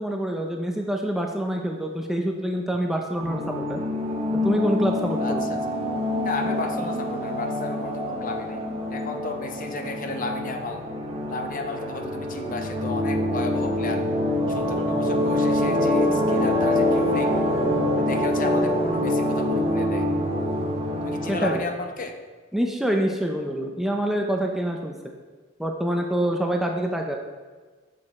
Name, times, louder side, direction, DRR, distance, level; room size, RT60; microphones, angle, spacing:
voice 1, 0.0-3.8 4.4-5.4 21.3-21.6 22.5-25.2 25.6-27.2, right 1 dB, ahead, 2 dB, 0.5 m, -26 dB
sound 1, 3.2-21.6, left 1 dB, 30° right, 0.9 m, -25 dB
voice 2, 5.2-5.6 6.2-10.8 11.3-14.0 14.5-17.3 18.0-20.1 21.0-22.2, left 3 dB, 45° left, 5 dB, 0.7 m, -33 dB
7.0 x 6.3 x 4.3 m, 1.4 s
head